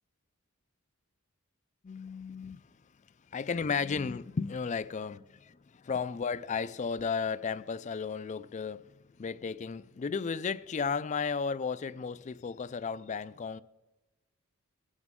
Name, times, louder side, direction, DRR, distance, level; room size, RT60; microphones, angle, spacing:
voice 1, 1.8-2.7 3.3-8.9 9.2-13.6, left 5 dB, 35° left, 0.3 m, -34 dB
22.0 x 8.2 x 3.6 m
head